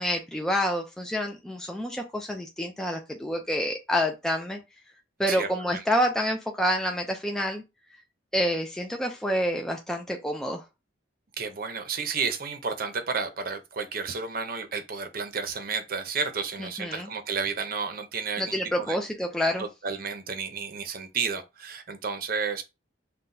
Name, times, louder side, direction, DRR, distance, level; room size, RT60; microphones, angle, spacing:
voice 1, 0.0-4.6 5.2-7.6 8.3-10.6 16.6-17.1 18.4-19.7, equal, 5° left, 0.4 m, -28 dB
voice 2, 5.3-5.8 11.4-18.6 18.9-19.0 19.6-22.6, right 5 dB, 50° right, 0.7 m, -32 dB
5.7 x 2.2 x 2.6 m
head